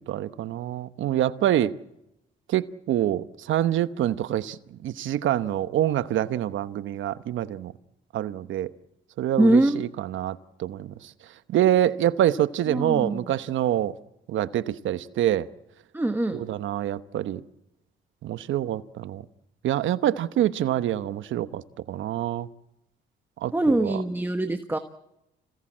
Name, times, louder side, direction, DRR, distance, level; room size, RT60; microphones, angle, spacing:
voice 1, 0.0-1.7 2.5-7.7 8.1-8.7 9.2-11.1 11.5-14.0 14.3-15.5 16.3-17.4 18.2-19.2 19.6-21.6 21.9-22.5 23.4-24.0, right 12 dB, 75° right, 1.0 m, -26 dB
voice 2, 9.4-9.8 12.7-13.3 15.9-16.4 23.5-24.8, right 1 dB, 10° right, 1.3 m, -23 dB
26.5 x 17.5 x 7.5 m
cardioid pair, 90°, 20 cm